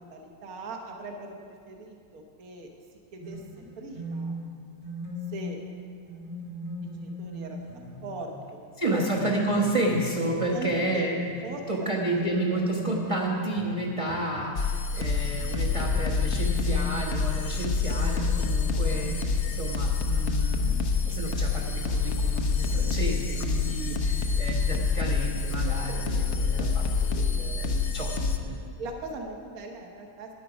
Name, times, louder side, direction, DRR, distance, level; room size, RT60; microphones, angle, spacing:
voice 1, 0.0-2.7 3.1-3.4 3.8-4.4 5.3-5.6 6.0-6.2 7.0-7.7 8.0-9.0 10.5-11.1 11.4-11.6 12.0-12.1 12.6-12.7 28.8-30.3, right 2 dB, 55° right, 2 dB, 1.5 m, -40 dB
sound 1, 3.2-8.6 9.0-14.8 15.0-17.7 18.0-19.1, left 1 dB, 75° right, 3.1 m, -38 dB
voice 2, 8.8-11.1 11.7-19.2 19.5-28.1 28.4-28.6, right 1 dB, 20° right, -2 dB, 1.0 m, -31 dB
sound 2, 14.6-28.4, left 4 dB, 55° left, 0.8 m, -27 dB
13.0 x 9.8 x 5.0 m, 2.3 s
omnidirectional pair, 2.0 m